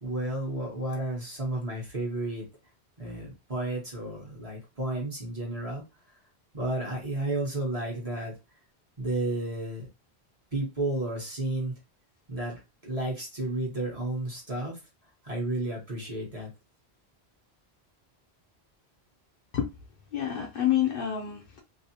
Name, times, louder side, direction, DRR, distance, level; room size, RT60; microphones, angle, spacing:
voice 1, 0.0-2.4 3.0-5.8 6.5-8.3 9.0-9.9 10.5-11.7 12.3-14.8 15.2-16.5, right 2 dB, 35° right, 1.0 m, -32 dB
voice 2, 20.1-21.6, left 11 dB, 65° left, 0.7 m, -28 dB
2.6 x 2.0 x 2.7 m
omnidirectional pair, 1.1 m